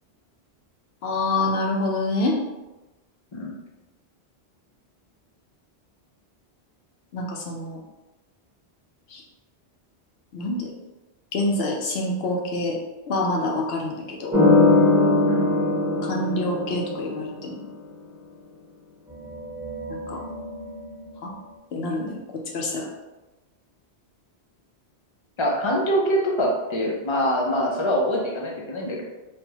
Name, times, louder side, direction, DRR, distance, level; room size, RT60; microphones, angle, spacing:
voice 1, 1.0-2.4 7.1-7.8 9.1-9.2 10.3-10.7 11.3-12.8 13.1-14.4 16.0-17.7 20.1-20.2 21.2-21.3 21.7-22.2 22.5-22.9, left 2 dB, 70° left, 0 dB, 0.9 m, -26 dB
sound 1, 14.3-17.4 19.1-20.8, left 2 dB, 10° right, 0.9 m, -21 dB
voice 2, 25.4-29.0, equal, 40° left, -2 dB, 0.5 m, -24 dB
3.3 x 2.1 x 2.8 m, 1.1 s
omnidirectional pair, 1.1 m